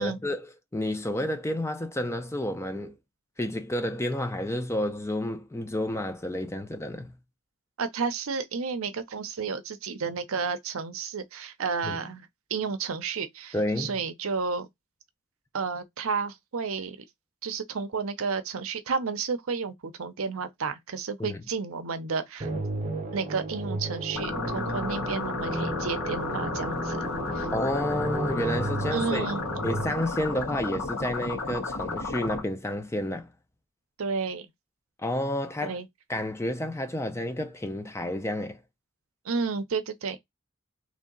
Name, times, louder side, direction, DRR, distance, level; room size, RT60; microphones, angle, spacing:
voice 1, 0.0-3.0 3.4-7.1 11.8-12.0 13.5-13.9 21.2-21.4 27.5-29.3 29.6-33.3 35.0-35.8 36.1-38.6, left 1 dB, 10° left, 0.4 m, -30 dB
voice 2, 7.8-14.7 15.5-17.0 17.4-22.5 23.1-27.1 27.3-27.5 28.9-29.4 34.0-34.5 35.6-35.9 39.2-40.2, right 5 dB, 75° right, 0.6 m, -31 dB
sound 1, 22.4-29.9, right 2 dB, 35° right, 0.7 m, -33 dB
sound 2, 24.1-32.4, left 3 dB, 80° left, 1.4 m, -33 dB
3.2 x 2.8 x 3.8 m
head